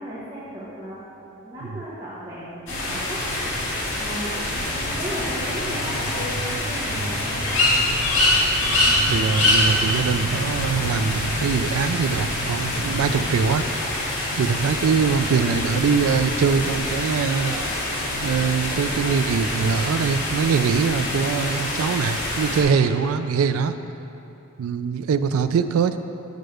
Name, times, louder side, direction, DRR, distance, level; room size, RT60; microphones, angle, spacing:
voice 1, 0.0-3.2 4.0-4.4 4.7-7.6, equal, 20° right, -10 dB, 1.2 m, -35 dB
sound 1, 2.7-22.6, left 1 dB, 60° left, 1.9 m, -25 dB
voice 2, 9.0-13.7 14.3-17.6 18.2-23.8 24.6-26.0, right 6 dB, 75° right, 10 dB, 0.3 m, -23 dB
6.6 x 5.4 x 6.4 m, 2.8 s
head